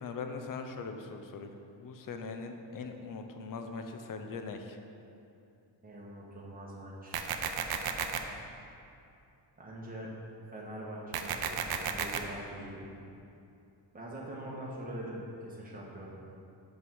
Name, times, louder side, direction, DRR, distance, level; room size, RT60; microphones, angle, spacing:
voice 1, 0.0-4.8, left 4 dB, 50° left, 6 dB, 0.7 m, -41 dB
voice 2, 5.8-7.4 9.6-10.1 10.5-12.8 13.9-16.1, right 1 dB, 20° right, -4 dB, 1.4 m, -43 dB
sound 1, 7.1-8.2 11.1-12.2, right 7 dB, 60° right, 0.6 m, -33 dB
5.9 x 5.6 x 6.2 m, 2.7 s
wide cardioid pair, 150°, 43 cm